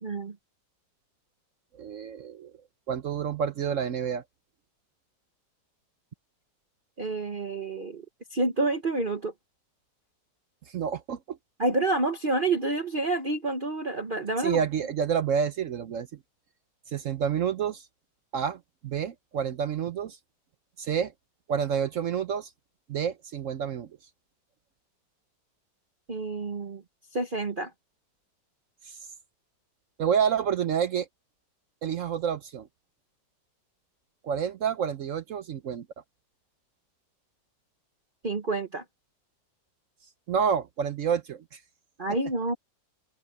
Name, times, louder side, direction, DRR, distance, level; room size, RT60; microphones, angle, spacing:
voice 1, 0.0-0.4 7.0-8.0 8.3-9.3 11.6-14.6 26.1-26.8 27.1-27.7 38.2-38.8 42.0-42.5, right 2 dB, 35° right, 1.0 m, -28 dB
voice 2, 1.8-2.5 2.9-4.2 10.7-11.4 14.4-16.1 16.9-17.9 18.3-20.2 20.8-21.1 21.5-22.5 22.9-23.9 28.8-29.0 30.0-31.1 31.8-32.7 34.2-35.9 40.3-41.6, right 7 dB, 60° right, 0.8 m, -29 dB
open air
omnidirectional pair, 2.0 m